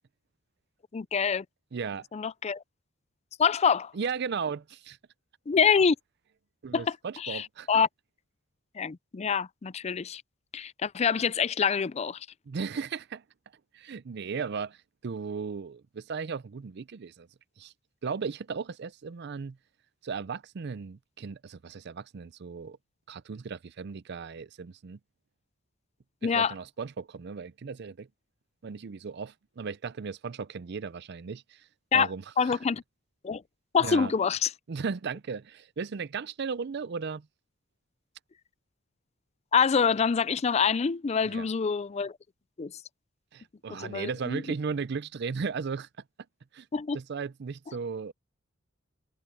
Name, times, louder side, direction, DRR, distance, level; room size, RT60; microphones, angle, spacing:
voice 1, 0.9-1.4 2.1-2.6 3.4-3.9 5.5-6.0 6.7-7.9 8.8-10.2 10.5-12.3 26.2-26.5 31.9-32.1 32.4-32.8 33.2-33.4 33.7-34.5 39.5-42.1 42.6-42.7 43.8-44.4 46.7-47.0, left 6 dB, 30° left, 0.4 m, -26 dB
voice 2, 1.7-2.1 3.9-5.0 6.6-7.7 12.5-13.2 13.7-14.8 15.0-17.3 17.6-17.7 18.0-19.6 20.0-22.8 23.1-25.0 26.2-28.1 28.6-31.6 31.9-32.6 33.8-34.1 34.7-37.3 41.2-41.5 43.3-45.9 46.5-46.7 46.9-48.1, right 5 dB, 55° right, 0.5 m, -36 dB
head